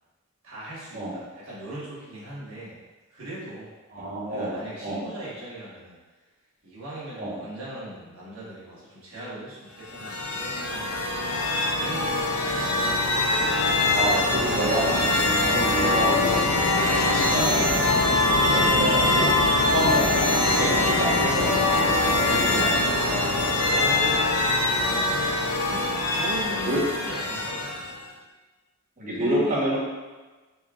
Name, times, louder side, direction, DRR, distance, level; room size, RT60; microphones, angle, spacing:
voice 1, 0.4-2.8 3.1-3.7 4.2-6.0 6.6-11.0 11.7-12.6 18.1-18.5 23.6-24.2 25.6-27.7 29.1-29.8, right 1 dB, 65° right, -8 dB, 1.4 m, -39 dB
voice 2, 3.9-5.1 7.2-7.4 13.9-16.4 16.7-17.9 18.4-19.3 19.7-23.2 26.6-26.8 29.0-29.8, equal, 35° right, -6 dB, 1.1 m, -28 dB
sound 1, 9.8-28.0, left 2 dB, 85° left, 0.6 m, -23 dB
4.2 x 3.5 x 2.4 m, 1.2 s
head